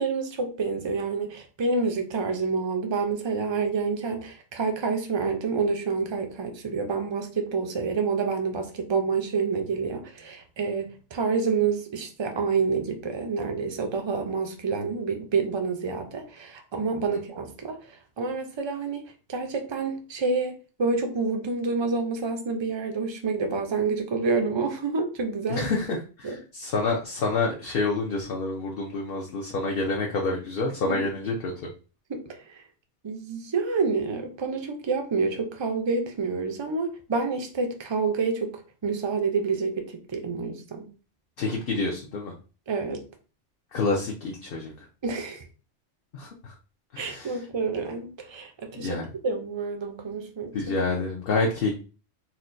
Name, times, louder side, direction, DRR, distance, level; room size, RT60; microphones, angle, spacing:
voice 1, 0.0-19.0 19.3-25.7 26.2-26.4 30.9-31.0 32.1-32.2 33.0-40.9 42.7-43.0 45.0-45.4 47.0-50.6, right 4 dB, 40° right, 0.4 m, -28 dB
voice 2, 25.5-31.5 41.4-42.3 43.7-44.9 46.1-46.6 46.9-47.5 48.7-49.1 50.5-51.7, left 3 dB, 60° left, 0.8 m, -28 dB
4.2 x 2.2 x 2.5 m
omnidirectional pair, 1.2 m